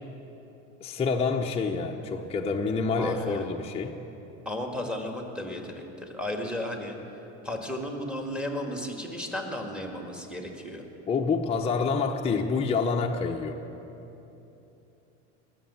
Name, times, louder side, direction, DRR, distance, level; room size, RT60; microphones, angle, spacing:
voice 1, 0.8-4.0 11.1-13.6, left 4 dB, 15° left, 1 dB, 0.7 m, -27 dB
voice 2, 3.0-3.4 4.5-7.0 7.4-10.9, left 1 dB, 5° right, 2 dB, 1.8 m, -34 dB
18.5 x 7.4 x 7.0 m, 3.0 s
hypercardioid pair, 90°, 36 cm